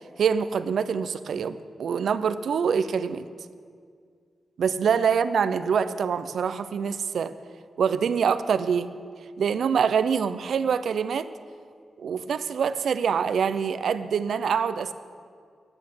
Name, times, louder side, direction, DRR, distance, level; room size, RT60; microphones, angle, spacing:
voice 1, 0.2-3.2 4.6-7.3 7.8-8.9 9.4-11.3 12.0-14.9, right 6 dB, 75° right, 12 dB, 0.5 m, -25 dB
11.5 x 9.8 x 7.4 m, 2.1 s
wide cardioid pair, 150°, 0 cm